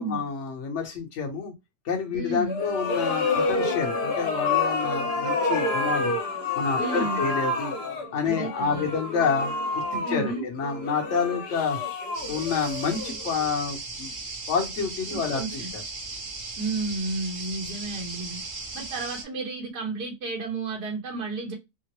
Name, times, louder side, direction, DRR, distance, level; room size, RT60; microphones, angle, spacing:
voice 1, 0.0-1.5 1.8-6.2 6.5-7.7 8.1-11.8 12.3-14.1 14.5-15.8, left 5 dB, 55° left, 1.1 m, -28 dB
voice 2, 2.1-2.6 6.8-7.3 8.3-8.9 10.0-10.5 15.1-15.7 16.6-18.4 18.7-21.5, right 3 dB, 75° right, 1.8 m, -32 dB
sound 1, 2.5-13.5, left 3 dB, 75° left, 1.3 m, -28 dB
sound 2, 12.1-19.2, right 3 dB, 45° right, 0.6 m, -37 dB
3.7 x 2.0 x 2.9 m
omnidirectional pair, 1.7 m